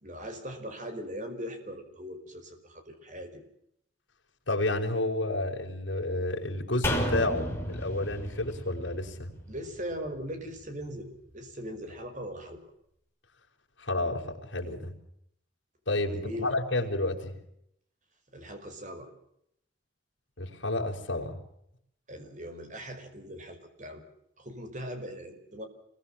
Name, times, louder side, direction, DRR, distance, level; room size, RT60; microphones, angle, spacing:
voice 1, 0.0-3.4 9.5-12.6 16.1-16.5 18.3-19.1 22.1-24.0 24.4-25.7, equal, 40° right, 6 dB, 5.4 m, -40 dB
voice 2, 4.5-9.3 13.8-14.9 15.9-17.4 20.4-21.4, left 2 dB, 75° left, 1 dB, 5.2 m, -30 dB
sound 1, 6.8-10.2 10.5-10.6, equal, 15° left, 5.5 m, -32 dB
27.0 x 22.5 x 7.4 m, 0.74 s
head